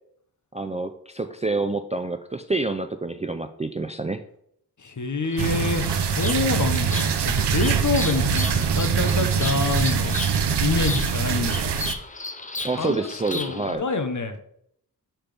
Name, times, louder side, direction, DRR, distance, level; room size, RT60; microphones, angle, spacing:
voice 1, 0.5-4.2 12.6-13.9, right 3 dB, 20° right, 8 dB, 0.3 m, -27 dB
voice 2, 4.8-10.3 10.6-11.8 12.8-12.9 13.3-14.4, left 4 dB, 45° left, 7 dB, 1.0 m, -26 dB
Bird vocalization bird call bird song, 5.2-13.8, left 3 dB, 20° left, 0.6 m, -36 dB
sound 1, 5.4-11.9, right 7 dB, 80° right, 0.7 m, -23 dB
8.5 x 5.8 x 3.4 m, 0.71 s
wide cardioid pair, 120°, 40 cm